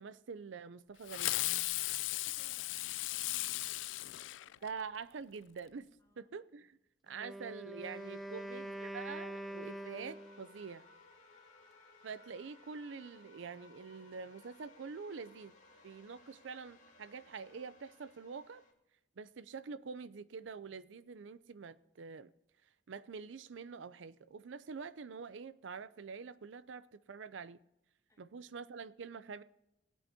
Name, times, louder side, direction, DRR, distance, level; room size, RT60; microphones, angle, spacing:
voice 1, 0.0-1.4 4.6-5.9 6.2-6.8 7.0-10.9 12.0-15.5 15.8-18.6 19.2-22.3 22.9-27.6 28.2-29.4, right 5 dB, 85° right, 0.5 m, -46 dB
Fireworks, 1.1-5.0, left 18 dB, 80° left, 0.3 m, -36 dB
voice 2, 1.8-4.7 6.0-6.3 6.6-6.7 28.1-28.3, equal, 15° left, 1.8 m, -70 dB
Wind instrument woodwind instrument, 7.1-10.6, right 1 dB, ahead, 0.4 m, -44 dB
sound 1, 7.8-18.7, left 2 dB, 40° left, 2.1 m, -61 dB
18.0 x 8.6 x 2.8 m
head